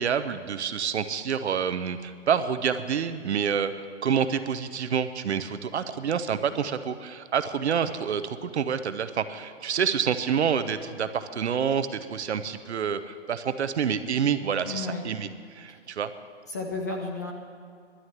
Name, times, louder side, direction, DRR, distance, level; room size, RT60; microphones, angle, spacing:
voice 1, 0.0-16.1, right 7 dB, 65° right, 11 dB, 1.0 m, -28 dB
voice 2, 14.6-15.1 15.7-15.8 16.5-17.3, left 3 dB, 15° left, 1 dB, 0.5 m, -33 dB
11.5 x 9.7 x 9.0 m, 2.3 s
hypercardioid pair, 160°, 36 cm